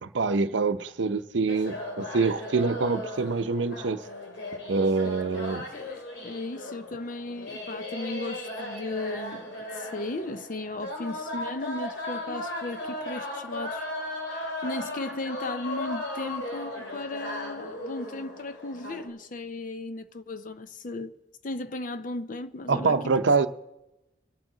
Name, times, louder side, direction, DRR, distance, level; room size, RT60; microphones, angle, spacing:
voice 1, 0.0-4.0 4.7-5.6 22.7-23.5, right 4 dB, 75° right, 0.6 m, -25 dB
sound 1, 1.5-19.1, left 1 dB, 80° left, 2.9 m, -36 dB
voice 2, 5.0-5.4 5.7-13.9 14.6-21.1 21.4-23.0, left 2 dB, 45° left, 0.6 m, -36 dB
25.0 x 8.9 x 3.8 m
head